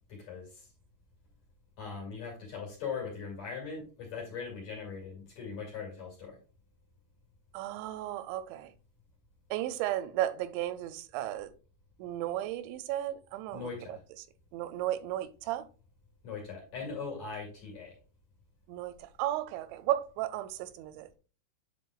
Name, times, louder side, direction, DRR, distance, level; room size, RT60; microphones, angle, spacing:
voice 1, 0.1-0.6 1.8-6.3 13.5-14.0 16.2-17.9, left 5 dB, 45° left, 3.0 m, -40 dB
voice 2, 7.5-8.7 9.5-11.5 12.0-14.3 14.5-15.6 18.7-21.1, right 13 dB, 90° right, 2.9 m, -34 dB
9.2 x 5.3 x 2.3 m
omnidirectional pair, 5.1 m